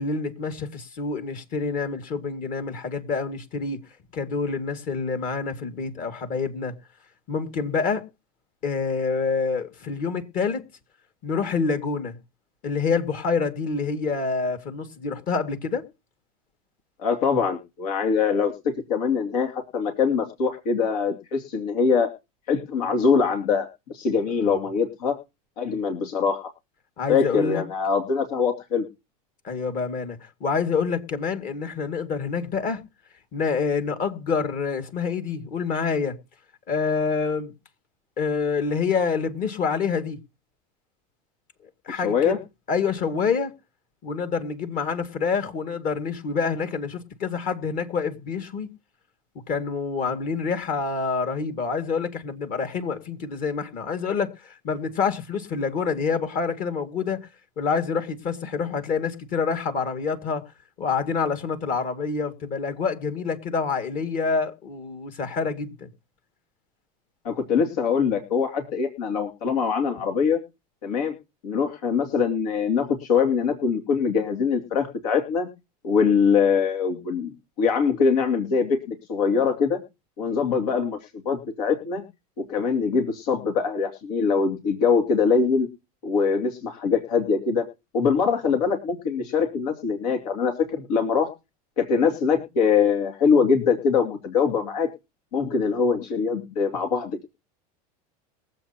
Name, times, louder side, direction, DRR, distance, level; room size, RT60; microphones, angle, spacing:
voice 1, 0.0-3.8 4.1-6.7 7.3-8.0 8.6-10.6 11.2-12.2 12.6-15.9 24.5-24.6 27.0-27.6 29.4-32.8 33.3-36.2 36.7-37.5 38.2-40.2 41.9-42.3 42.7-43.5 44.0-48.7 49.5-57.3 57.6-60.4 60.8-65.9, left 5 dB, 45° left, 2.2 m, -27 dB
voice 2, 17.0-18.5 18.9-22.1 22.5-23.7 23.9-25.2 25.6-26.5 27.1-28.9 42.0-42.4 67.2-70.4 70.8-71.1 71.4-75.5 75.8-79.8 80.2-81.0 81.2-82.0 82.5-85.7 86.0-87.6 87.9-91.3 91.8-94.9 95.3-97.2, left 5 dB, 80° left, 2.6 m, -23 dB
22.0 x 7.8 x 2.9 m
supercardioid pair, 130°, 20 cm